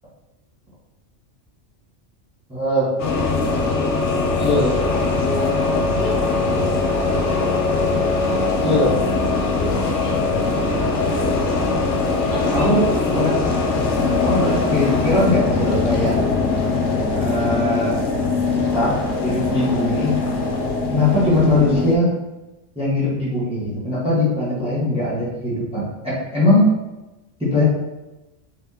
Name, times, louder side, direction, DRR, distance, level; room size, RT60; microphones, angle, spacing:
voice 1, 2.5-2.9 4.4-4.7 8.6-8.9 12.5-12.9 13.1-13.4 14.2-16.2 17.2-18.0 18.5-19.0 19.2-20.2 20.9-22.1 22.7-26.7 27.4-27.6, left 1 dB, 5° right, -9 dB, 1.2 m, -20 dB
sound 1, 3.0-22.0, left 3 dB, 70° left, 1.0 m, -21 dB
voice 2, 4.4-6.2 9.9-10.2 12.3-12.7, left 2 dB, 55° left, -8 dB, 1.9 m, -32 dB
4.3 x 3.3 x 2.8 m, 1.0 s
omnidirectional pair, 1.3 m